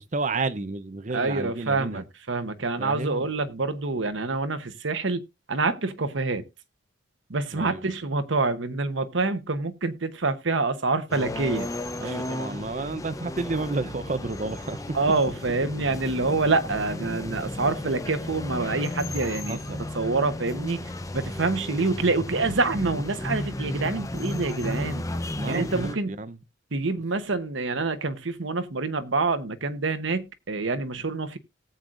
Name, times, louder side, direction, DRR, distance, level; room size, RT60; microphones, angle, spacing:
voice 1, 0.0-2.0 2.8-3.3 7.5-7.9 12.0-15.0 19.5-19.8 25.4-26.4, right 3 dB, 40° right, 0.7 m, -31 dB
voice 2, 1.1-2.0 2.3-5.2 5.5-6.4 7.3-11.7 12.0-12.1 14.9-19.6 19.9-20.8 21.1-25.0 25.5-26.1 26.7-31.4, right 3 dB, 70° right, 1.0 m, -26 dB
sound 1, 11.1-25.9, left 1 dB, 15° left, 0.6 m, -34 dB
18.0 x 7.8 x 2.5 m
head